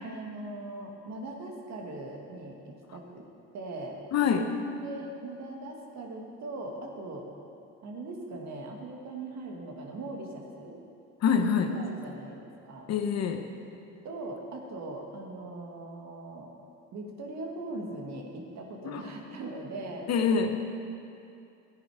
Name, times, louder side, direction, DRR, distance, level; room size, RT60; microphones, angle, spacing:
voice 1, 0.0-3.2 3.5-4.0 4.8-7.3 7.8-10.8 11.7-12.9 14.0-16.5 16.9-20.1, right 2 dB, 55° right, 1 dB, 2.2 m, -40 dB
voice 2, 4.1-4.5 11.2-11.7 12.9-13.4 18.8-19.1 20.1-20.6, left 6 dB, 50° left, 6 dB, 1.2 m, -25 dB
14.0 x 9.7 x 5.0 m, 2.6 s
supercardioid pair, 80°, 33 cm